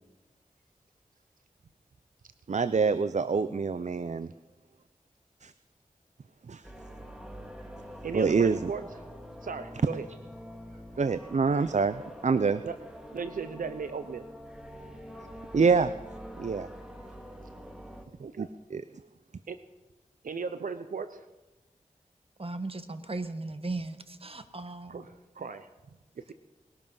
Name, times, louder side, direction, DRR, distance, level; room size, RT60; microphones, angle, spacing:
voice 1, 2.5-4.3 5.4-5.5 6.5-6.6 8.1-8.6 11.0-12.6 15.5-15.9 16.4-16.7 18.4-18.8, right 5 dB, 60° right, 13 dB, 0.6 m, -26 dB
sound 1, 6.6-18.0, equal, 5° right, 2.4 m, -45 dB
voice 2, 8.0-9.1 9.4-10.1 12.6-12.7 13.1-14.3 18.2-18.5 19.5-19.6 20.2-21.3 24.9-25.7 26.2-26.3, right 5 dB, 90° right, 10 dB, 0.8 m, -37 dB
voice 3, 22.4-25.0, right 2 dB, 45° right, 10 dB, 1.4 m, -37 dB
20.5 x 12.5 x 5.5 m, 1.1 s
cardioid pair, 40°, 14 cm